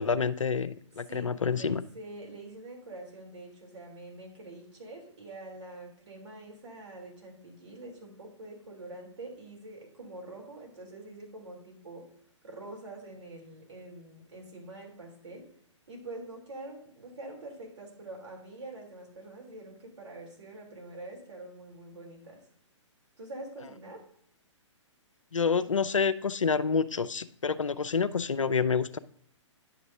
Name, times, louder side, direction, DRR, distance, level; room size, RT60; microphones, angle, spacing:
voice 1, 0.0-1.8 25.3-29.0, left 5 dB, 85° left, 14 dB, 0.5 m, -28 dB
voice 2, 1.1-12.1 12.4-15.5 15.9-22.5 23.2-24.0, right 2 dB, 65° right, 0 dB, 3.3 m, -45 dB
10.0 x 6.7 x 2.7 m, 0.65 s
figure-of-eight pair, 125°, 16 cm